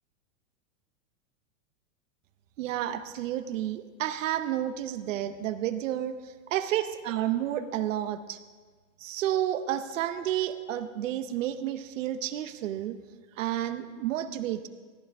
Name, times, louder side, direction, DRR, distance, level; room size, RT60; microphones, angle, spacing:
voice 1, 2.6-8.4 9.0-13.0 13.4-14.7, right 12 dB, 70° right, 11 dB, 0.9 m, -31 dB
15.0 x 11.0 x 3.6 m, 1.4 s
supercardioid pair, 155°, 40 cm